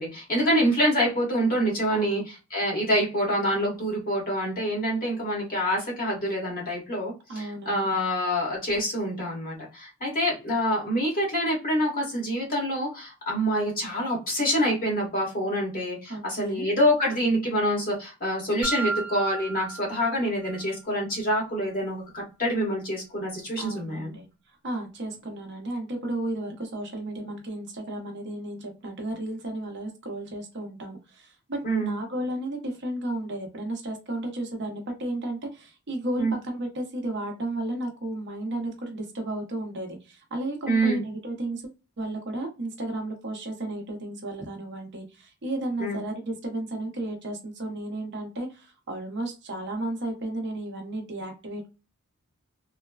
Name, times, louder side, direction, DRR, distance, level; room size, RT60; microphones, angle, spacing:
voice 1, 0.0-24.1 31.6-31.9 36.2-36.3 40.7-41.0 45.8-46.0, equal, 40° left, -3 dB, 1.4 m, -26 dB
voice 2, 1.9-2.2 7.3-7.9 16.1-16.7 23.6-24.3 24.6-41.6 42.0-51.7, right 1 dB, 50° right, 3 dB, 0.7 m, -33 dB
sound 1, 18.6-20.6, right 3 dB, 75° right, 0.9 m, -33 dB
3.1 x 2.1 x 2.3 m, 0.30 s
head